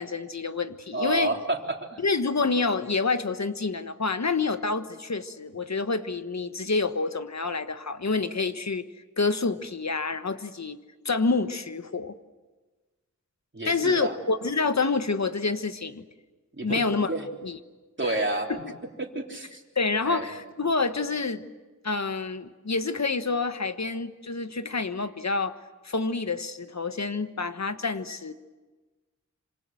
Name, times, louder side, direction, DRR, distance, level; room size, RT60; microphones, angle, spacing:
voice 1, 0.0-1.3 2.0-8.9 9.2-10.8 11.0-12.2 13.6-16.0 16.6-17.2 17.4-17.6 18.0-18.1 18.6-18.7 19.7-21.4 21.8-25.6 25.8-28.3, left 4 dB, 60° left, 10 dB, 1.4 m, -28 dB
voice 2, 0.9-2.0 13.5-14.2 16.6-16.8 17.1-17.3 18.0-18.5 19.0-19.6 20.1-20.3, right 2 dB, 40° right, 1 dB, 3.6 m, -29 dB
27.0 x 26.5 x 7.7 m, 1.3 s
wide cardioid pair, 65°, 30 cm